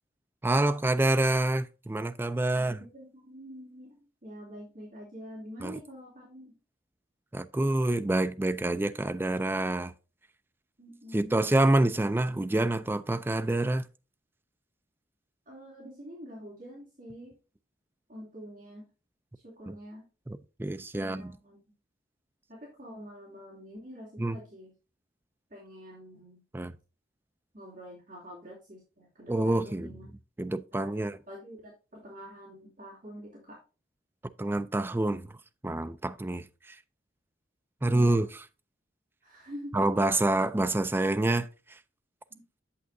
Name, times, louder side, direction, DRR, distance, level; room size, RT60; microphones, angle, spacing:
voice 1, 0.4-2.8 5.6-5.8 7.3-9.9 11.1-13.9 20.3-21.3 24.2-24.4 26.5-26.7 29.3-29.9 30.4-31.2 34.4-35.3 35.6-36.8 37.8-38.3 39.7-41.8, right 2 dB, 10° right, 0.3 m, -27 dB
voice 2, 2.5-6.5 10.8-11.5 15.5-17.4 18.1-18.8 19.4-20.0 21.0-21.6 22.5-24.7 25.5-26.4 27.5-30.0 30.7-33.6 37.8-38.3 39.2-40.3 42.3-42.4, equal, 45° right, 2.8 m, -46 dB
8.5 x 7.5 x 2.6 m
head